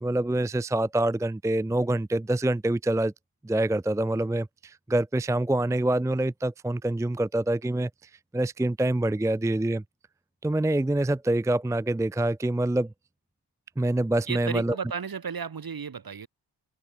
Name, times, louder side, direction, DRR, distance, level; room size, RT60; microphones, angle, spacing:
voice 1, 0.0-3.1 3.4-9.8 10.4-12.9 13.8-14.8, right 1 dB, 5° right, 0.6 m, -26 dB
voice 2, 14.3-16.3, right 6 dB, 55° right, 3.9 m, -34 dB
wide cardioid pair, 95°, 44 cm